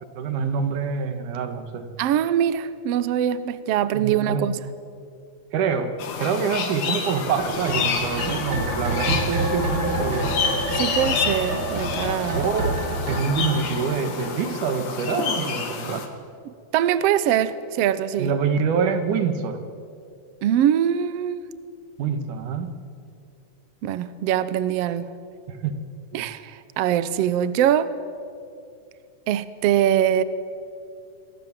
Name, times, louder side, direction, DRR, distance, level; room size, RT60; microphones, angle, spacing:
voice 1, 0.2-1.9 3.9-4.5 5.5-5.9 6.2-10.4 12.3-12.8 13.1-16.1 18.2-19.6 22.0-22.7 25.5-25.7 26.1-26.3, right 6 dB, 85° right, 8 dB, 3.1 m, -26 dB
voice 2, 2.0-4.6 10.7-12.4 16.7-18.3 20.4-21.5 23.8-25.1 26.1-27.9 29.3-30.2, right 10 dB, 70° right, 14 dB, 1.7 m, -23 dB
sound 1, 6.0-16.1, left 6 dB, 85° left, 3.5 m, -29 dB
sound 2, 7.4-14.7 15.0-15.1, right 1 dB, 40° right, 6.5 m, -27 dB
28.0 x 22.0 x 7.5 m, 2.4 s
omnidirectional pair, 3.5 m